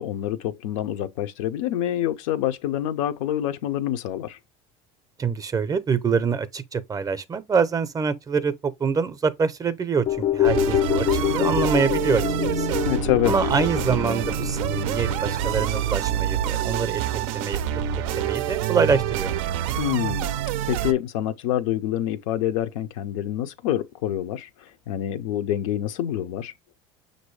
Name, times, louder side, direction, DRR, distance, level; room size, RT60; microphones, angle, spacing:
voice 1, 0.0-4.4 12.8-13.3 19.8-20.4 20.7-24.5 24.9-26.5, left 12 dB, 90° left, 0.5 m, -26 dB
voice 2, 5.2-12.8 13.3-17.0 17.3-17.6 18.2-19.4, right 5 dB, 20° right, 0.5 m, -25 dB
sound 1, 10.1-18.5 18.8-18.9, left 11 dB, 35° left, 0.4 m, -27 dB
sound 2, 10.4-20.9, right 10 dB, 90° right, 0.4 m, -27 dB
6.0 x 2.6 x 3.1 m
supercardioid pair, 110°, 16 cm